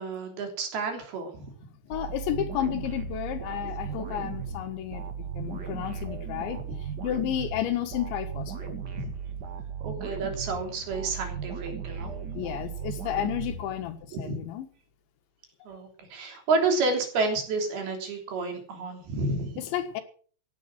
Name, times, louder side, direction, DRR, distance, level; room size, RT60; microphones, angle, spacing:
voice 1, 0.0-1.5 9.0-9.1 9.8-12.1 14.3-14.4 15.7-19.5, right 3 dB, 60° right, 4 dB, 5.1 m, -30 dB
voice 2, 1.9-5.0 5.4-6.6 7.0-8.7 12.4-14.7 19.7-20.0, left 11 dB, 80° left, 8 dB, 4.0 m, -31 dB
sound 1, 1.9-14.2, right 6 dB, 45° right, 1.3 m, -36 dB
16.5 x 10.0 x 6.3 m, 0.43 s
omnidirectional pair, 5.1 m